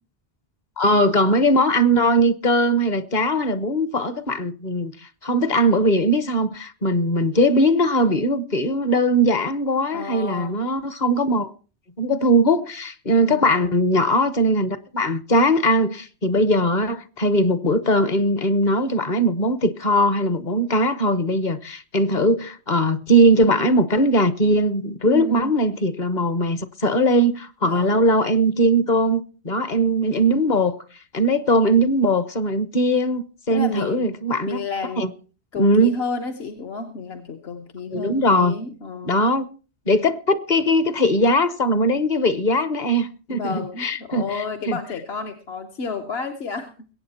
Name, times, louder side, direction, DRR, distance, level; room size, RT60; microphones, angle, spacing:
voice 1, 0.8-4.9 5.2-11.5 12.0-30.8 31.1-34.6 35.0-35.1 35.6-35.9 37.9-38.5 39.1-39.4 39.9-44.8, equal, 45° left, 0.9 m, -20 dB
voice 2, 9.9-10.6 13.2-13.8 25.0-25.5 27.6-28.0 33.5-34.1 34.5-35.2 35.5-39.2 43.3-46.7, left 4 dB, 65° left, 1.3 m, -31 dB
22.0 x 8.6 x 4.2 m
omnidirectional pair, 1.2 m